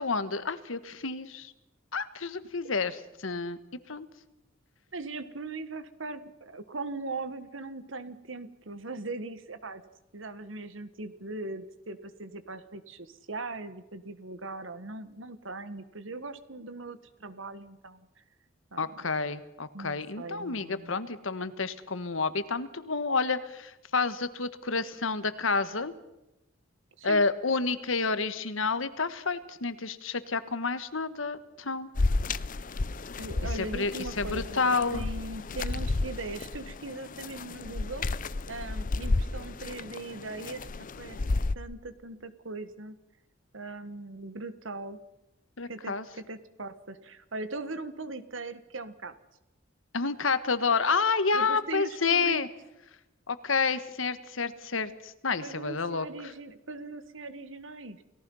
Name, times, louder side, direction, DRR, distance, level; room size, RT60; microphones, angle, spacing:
voice 1, 0.0-1.5 1.9-3.6 3.9-4.1 18.8-25.9 27.0-31.9 33.5-35.0 45.6-46.0 49.9-52.5 53.3-56.3, left 4 dB, 80° left, 12 dB, 1.5 m, -29 dB
voice 2, 4.9-9.8 10.1-18.1 18.7-18.9 19.7-20.9 27.0-27.2 33.2-38.1 38.5-40.7 41.0-41.2 41.6-43.0 43.5-45.0 45.7-49.2 51.3-52.4 55.4-58.0, right 3 dB, 70° right, 11 dB, 1.7 m, -40 dB
sound 1, 32.0-41.5, left 3 dB, 45° left, 0.7 m, -32 dB
29.5 x 18.0 x 5.6 m, 0.92 s
head